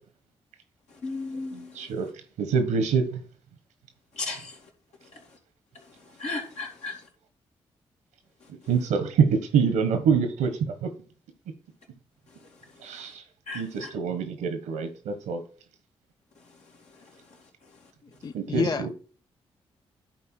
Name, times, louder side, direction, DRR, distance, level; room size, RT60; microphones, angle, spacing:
voice 1, 1.0-1.9 4.1-4.7 5.1-5.2 6.2-6.9 13.5-13.9 17.0-17.1, left 3 dB, 70° left, 2.6 m, -35 dB
voice 2, 1.5-2.1 2.4-3.2 8.7-10.9 12.8-13.2 13.5-15.4 18.3-18.9, right 6 dB, 85° right, 1.3 m, -25 dB
voice 3, 18.2-18.9, left 6 dB, 35° left, 0.4 m, -29 dB
11.0 x 4.2 x 4.4 m
supercardioid pair, 45°, 12 cm